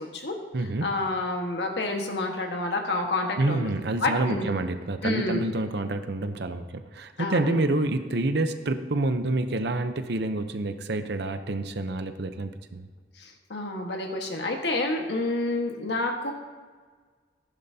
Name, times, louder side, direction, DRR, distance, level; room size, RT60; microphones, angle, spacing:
voice 1, 0.0-0.3 0.8-3.7 4.0-4.5 5.0-5.4 7.2-7.6 13.2-16.3, left 2 dB, 70° left, 3 dB, 1.5 m, -29 dB
voice 2, 0.5-0.9 3.4-12.9, right 2 dB, 65° right, 9 dB, 0.8 m, -28 dB
15.0 x 11.0 x 2.8 m, 1.5 s
head